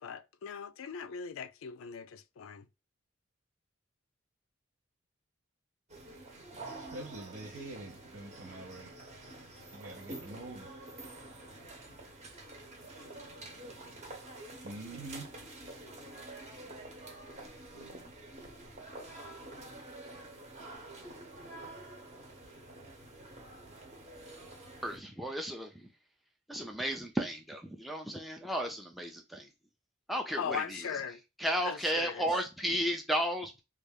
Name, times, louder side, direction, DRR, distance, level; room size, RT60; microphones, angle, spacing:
voice 1, 0.0-2.6 30.4-31.2 31.6-32.3, left 7 dB, 85° left, 0.4 m, -39 dB
sound 1, 5.9-25.0, right 2 dB, 35° right, 0.8 m, -48 dB
voice 2, 6.8-8.9 9.7-10.7 14.6-15.3, right 2 dB, 75° right, 0.7 m, -45 dB
voice 3, 24.8-25.9 26.5-29.5 30.1-31.0 31.4-33.6, equal, ahead, 0.4 m, -34 dB
3.3 x 2.3 x 3.4 m
head